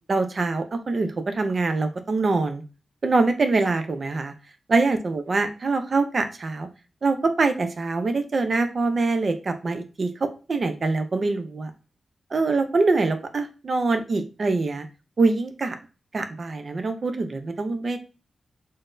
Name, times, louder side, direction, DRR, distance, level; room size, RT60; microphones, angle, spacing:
voice 1, 0.1-2.6 3.0-4.3 4.7-6.7 7.0-11.7 12.3-14.9 15.2-15.8 16.1-18.0, right 3 dB, 50° right, 8 dB, 0.5 m, -24 dB
4.0 x 2.0 x 2.5 m, 0.34 s
cardioid pair, 80°, 0 cm